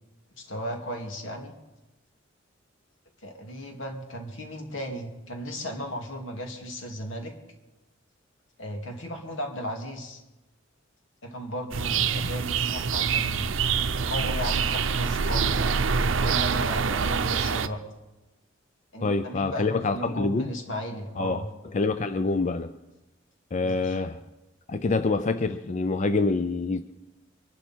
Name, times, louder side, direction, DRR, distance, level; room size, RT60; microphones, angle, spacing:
voice 1, 0.4-1.5 3.2-7.3 8.6-10.2 11.2-13.5 14.1-15.6 16.2-17.8 18.9-21.5 23.6-24.0, equal, 75° left, 2.5 m, -35 dB
sound 1, 11.7-17.7, right 6 dB, 80° right, 0.7 m, -25 dB
voice 2, 19.0-20.5 21.2-21.4 21.7-22.7 23.5-24.2 24.7-26.8, left 3 dB, 40° left, 0.5 m, -26 dB
23.5 x 12.0 x 4.4 m
head